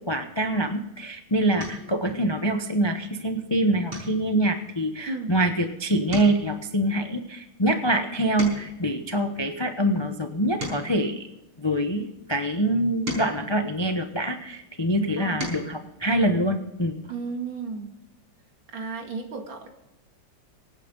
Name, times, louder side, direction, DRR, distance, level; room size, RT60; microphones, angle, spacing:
voice 1, 0.0-11.3 11.6-17.0, right 1 dB, 25° left, 5 dB, 0.5 m, -25 dB
sound 1, 1.6-2.0 2.5-2.8 3.2-3.4 3.9-5.7 6.0-8.9 9.5-12.0 12.6-14.5 15.0-15.8 17.2-17.3 17.6-17.7, right 1 dB, 90° right, 6.6 m, -39 dB
voice 2, 17.1-17.9 18.7-19.7, right 4 dB, 65° right, 3 dB, 3.0 m, -33 dB
24.5 x 9.3 x 3.9 m, 0.96 s
omnidirectional pair, 2.3 m